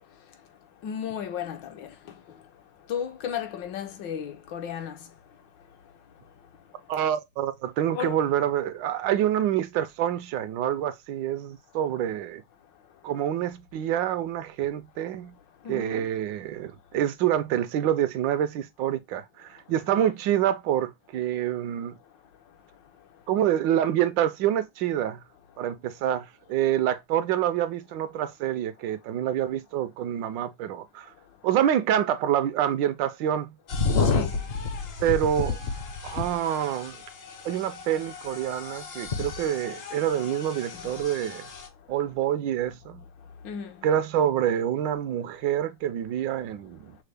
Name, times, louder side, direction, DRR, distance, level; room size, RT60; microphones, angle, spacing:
voice 1, 0.8-1.9 2.9-5.0 7.9-8.2 15.6-16.1 19.9-20.1 34.0-34.4 40.7-40.8 43.4-43.7, left 8 dB, 75° left, 1.5 m, -34 dB
voice 2, 6.9-12.4 13.0-15.3 15.7-22.0 23.3-25.2 25.6-31.1 31.4-33.6 35.0-35.6 36.0-37.0 37.4-41.5 41.9-43.0 43.8-47.0, right 10 dB, 80° right, 1.2 m, -27 dB
sound 1, 33.7-41.7, left 4 dB, 55° left, 0.7 m, -31 dB
6.4 x 2.1 x 3.3 m
omnidirectional pair, 2.0 m